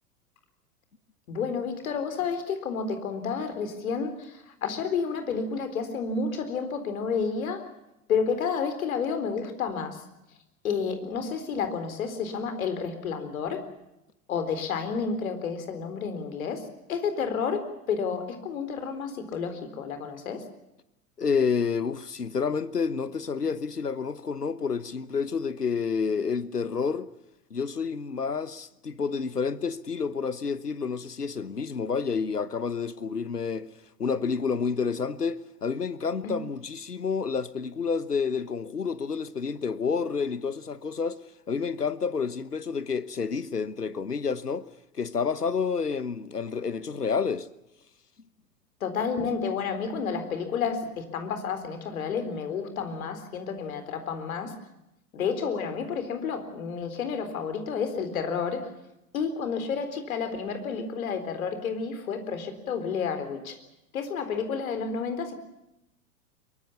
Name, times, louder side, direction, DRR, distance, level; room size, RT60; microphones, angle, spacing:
voice 1, 1.3-7.7 8.1-10.0 10.6-13.6 14.3-20.4 36.2-36.3 48.8-54.6 55.1-58.7 59.1-63.6 63.9-65.3, left 6 dB, 60° left, 4.1 m, -30 dB
voice 2, 21.2-27.1 27.5-33.7 34.0-41.2 41.5-44.7 44.9-47.5, left 5 dB, 85° left, 1.2 m, -29 dB
23.5 x 23.0 x 7.1 m
figure-of-eight pair, 90°, 46 cm